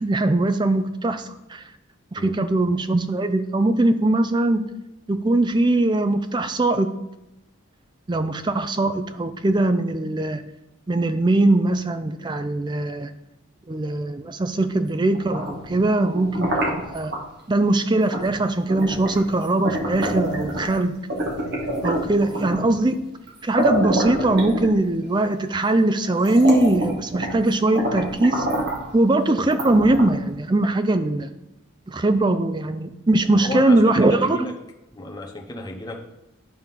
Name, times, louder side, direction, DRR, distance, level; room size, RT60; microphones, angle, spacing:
voice 1, 0.0-1.6 2.1-4.6 5.1-6.9 8.1-10.4 10.9-13.1 13.7-17.1 17.5-20.9 21.8-23.0 23.4-28.5 28.9-31.3 31.9-34.5, right 2 dB, 20° right, 10 dB, 0.4 m, -21 dB
sound 1, 15.1-17.2 18.1-18.3 18.7-20.8 21.1-22.7 23.3-23.4 23.6-25.1 25.7-25.8 26.2-27.4 27.7-28.9 29.5-30.3, right 1 dB, 50° right, 1.4 m, -27 dB
voice 2, 33.3-34.5 34.9-36.1, left 2 dB, 20° left, 0 dB, 0.9 m, -33 dB
11.0 x 3.7 x 5.7 m, 0.93 s
head